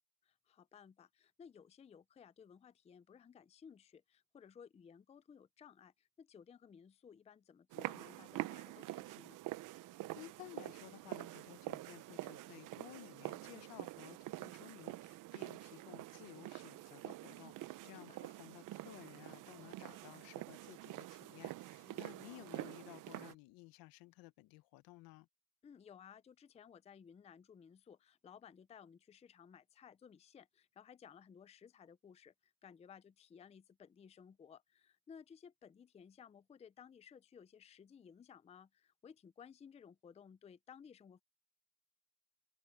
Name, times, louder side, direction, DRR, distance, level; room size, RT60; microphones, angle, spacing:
voice 1, 0.2-9.4 17.8-18.3 21.8-22.4 25.6-41.2, left 7 dB, 15° left, 0.5 m, -59 dB
sound 1, 7.7-23.3, right 17 dB, 55° right, 0.8 m, -47 dB
voice 2, 10.1-25.3, left 20 dB, 70° left, 1.0 m, -56 dB
cardioid pair, 115°, 37 cm